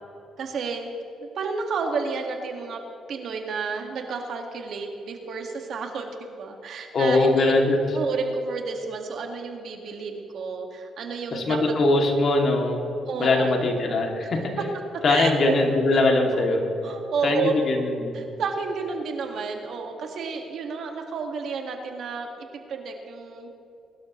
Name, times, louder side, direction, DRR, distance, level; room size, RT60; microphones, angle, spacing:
voice 1, 0.4-0.9 1.2-2.8 3.1-7.5 7.9-11.6 13.1-13.6 14.6-14.7 14.9-15.5 16.3-16.5 16.8-17.6 18.1-23.5, right 5 dB, 65° right, 3 dB, 2.1 m, -31 dB
voice 2, 6.9-7.8 11.3-12.8 13.2-14.4 15.0-16.6 17.2-18.1, left 2 dB, 55° left, 1 dB, 2.8 m, -21 dB
22.5 x 12.5 x 3.3 m, 2.8 s
cardioid pair, 90°, 0 cm